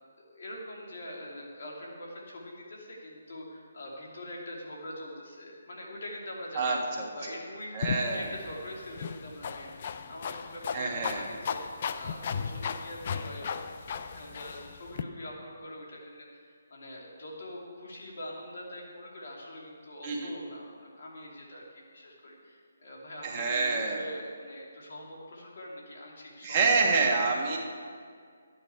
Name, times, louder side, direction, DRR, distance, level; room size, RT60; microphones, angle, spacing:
voice 1, 0.3-6.8 7.2-26.7, left 1 dB, 60° left, -2 dB, 2.8 m, -44 dB
voice 2, 6.5-7.0 7.7-8.3 10.7-11.2 20.0-20.3 23.2-24.0 26.4-27.6, right 4 dB, 30° right, -1 dB, 1.6 m, -27 dB
sound 1, 7.8-15.0, left 6 dB, 45° left, 0.5 m, -36 dB
11.5 x 8.9 x 4.7 m, 2.1 s
figure-of-eight pair, 150°, 0 cm